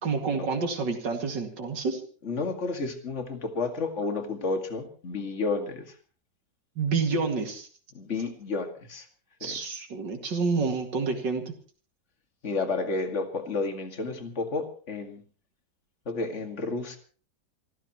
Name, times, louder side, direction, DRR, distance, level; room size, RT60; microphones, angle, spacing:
voice 1, 0.0-2.0 6.8-7.7 9.4-11.4, right 4 dB, 85° right, 4 dB, 2.9 m, -28 dB
voice 2, 2.2-5.8 7.9-9.1 9.4-9.6 12.4-15.2 16.1-17.0, left 3 dB, 40° left, 5 dB, 2.4 m, -31 dB
27.5 x 14.0 x 3.1 m, 0.40 s
omnidirectional pair, 1.9 m